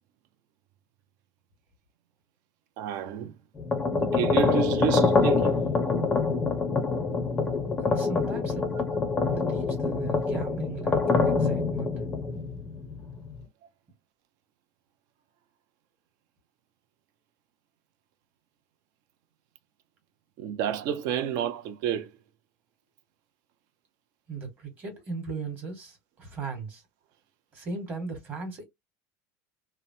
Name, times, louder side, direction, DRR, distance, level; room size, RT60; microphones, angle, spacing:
voice 1, 2.8-3.3 4.0-5.6 20.4-22.1, right 8 dB, 50° right, 0.6 m, -30 dB
sound 1, 3.6-13.4, left 4 dB, 15° left, 0.5 m, -25 dB
voice 2, 7.8-8.7 9.3-11.9 24.3-26.8 27.5-28.7, right 4 dB, 20° right, 1.2 m, -37 dB
2.9 x 2.1 x 2.6 m
cardioid pair, 170°, 8 cm